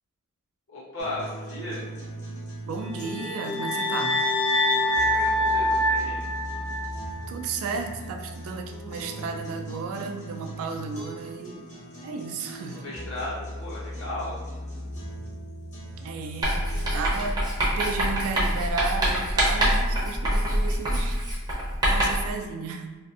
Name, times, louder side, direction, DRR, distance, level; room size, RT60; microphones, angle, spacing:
voice 1, 0.7-1.8 4.9-6.3 12.7-14.4 17.1-17.2, left 1 dB, 60° left, -8 dB, 1.0 m, -36 dB
sound 1, 1.0-17.0, equal, 35° left, 0.9 m, -39 dB
voice 2, 2.7-4.2 7.3-11.6 12.0-12.8 16.0-16.6 16.9-21.2 21.8-22.9, right 4 dB, 65° right, 5 dB, 0.3 m, -33 dB
sound 2, 2.9-7.2, left 1 dB, 85° left, 0.4 m, -25 dB
Writing, 16.4-22.3, equal, 20° right, 0.5 m, -25 dB
2.4 x 2.4 x 2.4 m, 1.2 s
head